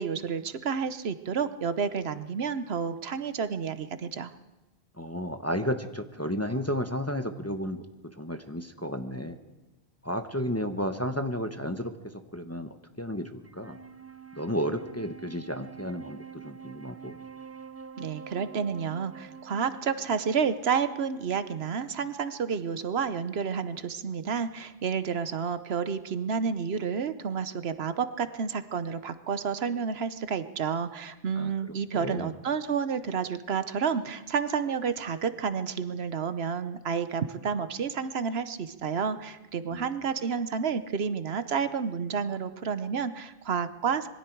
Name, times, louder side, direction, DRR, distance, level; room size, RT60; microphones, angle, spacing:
voice 1, 0.0-4.3 18.0-44.1, right 6 dB, 70° right, 12 dB, 1.1 m, -30 dB
voice 2, 5.0-7.8 8.2-9.4 10.0-11.9 12.3-13.8 14.3-17.2 31.3-31.5 31.9-32.3 39.7-39.9, equal, 15° left, 7 dB, 1.0 m, -32 dB
Wind instrument woodwind instrument, 13.4-22.9, right 7 dB, 20° right, 0.4 m, -47 dB
26.0 x 22.0 x 4.7 m, 1.1 s
omnidirectional pair, 1.1 m